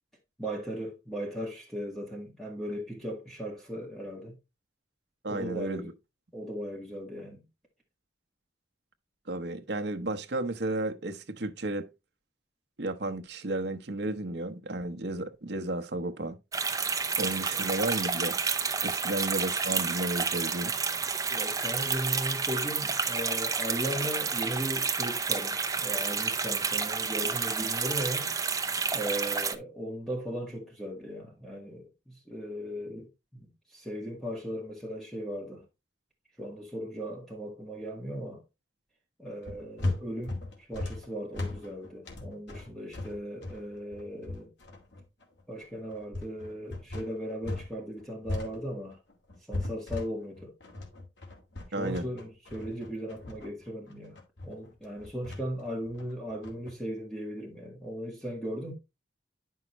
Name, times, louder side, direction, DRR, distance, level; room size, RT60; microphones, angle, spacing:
voice 1, 0.4-4.4 5.3-5.9 6.3-7.4 17.5-17.6 21.3-28.3 28.9-35.6 36.4-38.4 39.2-40.4 40.7-44.5 45.5-49.0 49.5-50.5 51.8-54.2 54.4-58.7, equal, ahead, 1.8 m, -37 dB
voice 2, 5.2-5.9 9.3-11.9 12.8-16.4 17.2-18.4 18.8-20.8 51.7-52.1, right 2 dB, 65° right, 0.9 m, -33 dB
sound 1, 16.5-29.5, right 5 dB, 20° right, 0.7 m, -30 dB
sound 2, 39.4-47.7 48.0-56.7, left 2 dB, 75° left, 2.3 m, -37 dB
9.9 x 5.7 x 3.1 m
head